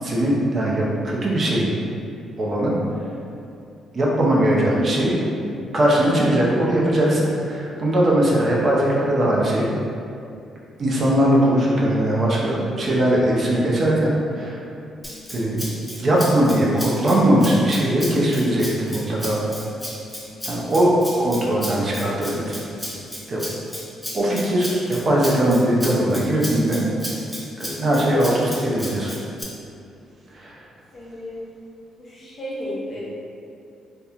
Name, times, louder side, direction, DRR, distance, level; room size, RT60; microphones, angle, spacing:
voice 1, 0.0-1.7 2.4-2.8 3.9-5.2 5.7-9.7 10.8-14.6 15.3-15.6 15.9-19.4 20.5-22.6 23.3-23.4 24.1-27.2 27.6-29.2 30.3-30.6, right 1 dB, 45° right, -4 dB, 0.5 m, -20 dB
Rattle (instrument), 15.0-29.4, equal, 5° left, 0.5 m, -34 dB
voice 2, 30.9-31.5 32.0-33.0, equal, 45° left, -7 dB, 0.9 m, -33 dB
2.9 x 2.1 x 2.4 m, 2.5 s
cardioid pair, 90°, 0 cm